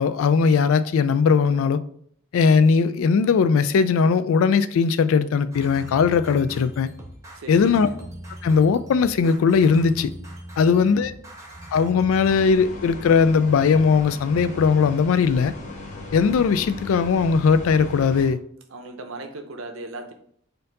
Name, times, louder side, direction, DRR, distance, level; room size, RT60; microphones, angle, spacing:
voice 1, 0.0-1.8 2.3-6.9 7.5-7.9 8.4-10.1 10.6-11.1 11.7-15.5 16.1-18.4, left 5 dB, 75° left, 0.3 m, -19 dB
sound 1, 5.5-12.5, right 1 dB, 15° right, 0.7 m, -40 dB
voice 2, 7.3-7.9 10.6-11.1 18.7-20.1, right 2 dB, 75° right, 0.7 m, -38 dB
sound 2, 12.2-18.3, left 2 dB, 35° left, 0.8 m, -37 dB
4.3 x 2.6 x 3.9 m
head